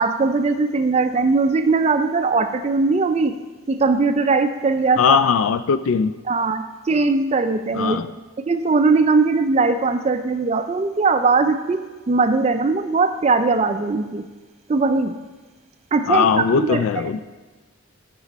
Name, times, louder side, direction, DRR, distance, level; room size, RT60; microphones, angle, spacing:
voice 1, 0.0-3.4 3.7-5.2 6.3-8.0 8.4-14.3 14.7-15.2 15.9-16.8, right 3 dB, 30° right, 9 dB, 0.3 m, -20 dB
voice 2, 5.0-6.1 7.7-8.1 16.1-17.2, left 6 dB, 75° left, 14 dB, 0.3 m, -19 dB
13.0 x 6.2 x 4.1 m, 1.3 s
head